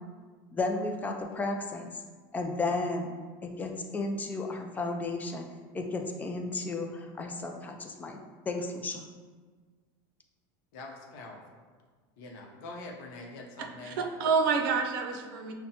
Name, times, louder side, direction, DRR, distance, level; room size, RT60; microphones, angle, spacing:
voice 1, 0.5-1.9 2.3-3.1 3.4-5.5 5.7-8.2 8.5-9.0, left 3 dB, 15° left, 4 dB, 0.3 m, -33 dB
voice 2, 10.7-11.4 12.2-14.1, left 2 dB, 70° left, 1 dB, 0.7 m, -44 dB
voice 3, 13.6-15.5, right 5 dB, 80° right, 3 dB, 0.5 m, -28 dB
5.3 x 2.1 x 2.9 m, 1.5 s
supercardioid pair, 140°, 11 cm